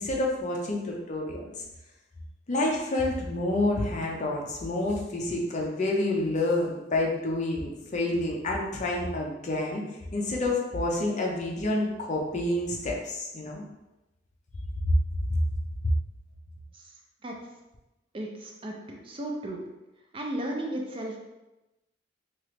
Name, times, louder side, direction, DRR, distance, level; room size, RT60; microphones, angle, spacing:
voice 1, 0.0-1.5 2.5-9.8 10.1-13.6 14.8-15.0 15.3-15.4 15.8-15.9, left 1 dB, 40° left, -1 dB, 0.5 m, -28 dB
voice 2, 18.1-19.6 20.1-21.2, right 1 dB, 30° right, 0 dB, 0.4 m, -35 dB
3.0 x 2.4 x 3.2 m, 1.0 s
head